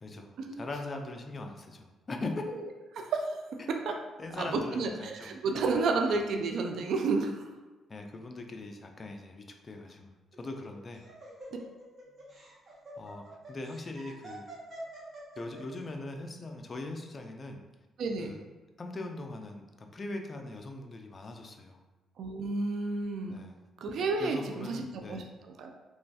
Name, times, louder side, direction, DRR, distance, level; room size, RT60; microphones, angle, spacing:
voice 1, 0.0-2.4 3.6-3.8 4.2-5.4 6.1-6.2 7.9-11.0 13.0-14.5 15.4-17.7 18.2-18.4 18.8-21.8 23.3-23.6 24.2-25.3, left 2 dB, 35° left, 4 dB, 0.4 m, -41 dB
voice 2, 2.9-3.3 3.7-3.9 4.4-7.5 18.0-18.3 22.2-23.4 23.8-25.2 25.6-25.7, right 3 dB, 70° right, 4 dB, 0.3 m, -31 dB
Laughter, 10.3-15.8, right 1 dB, 45° right, 0.9 m, -47 dB
3.0 x 2.2 x 2.7 m, 1.2 s
cardioid pair, 90°, 0 cm